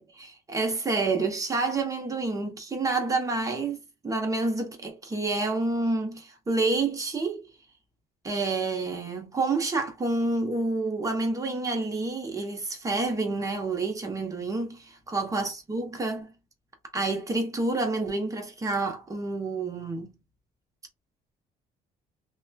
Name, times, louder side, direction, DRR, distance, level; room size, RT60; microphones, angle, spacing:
voice 1, 0.0-7.4 8.2-16.3 16.9-20.1, right 3 dB, 20° right, 0.9 m, -28 dB
3.0 x 2.2 x 2.3 m
cardioid pair, 110°, 17 cm